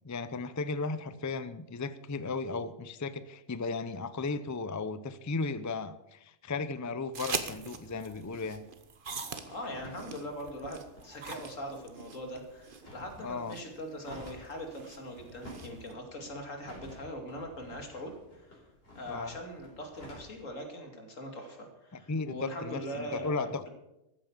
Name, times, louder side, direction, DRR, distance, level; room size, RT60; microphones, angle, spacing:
voice 1, 0.0-8.6 13.2-13.6 19.1-19.4 22.1-23.7, left 3 dB, 25° left, 13 dB, 0.4 m, -35 dB
sound 1, 7.1-15.9, right 5 dB, 45° right, 1.2 m, -42 dB
voice 2, 9.5-18.6 18.9-23.7, equal, 80° left, 4 dB, 2.9 m, -41 dB
sound 2, 9.6-20.4, left 1 dB, 50° left, 4.7 m, -53 dB
14.0 x 9.0 x 7.3 m, 0.90 s
omnidirectional pair, 1.3 m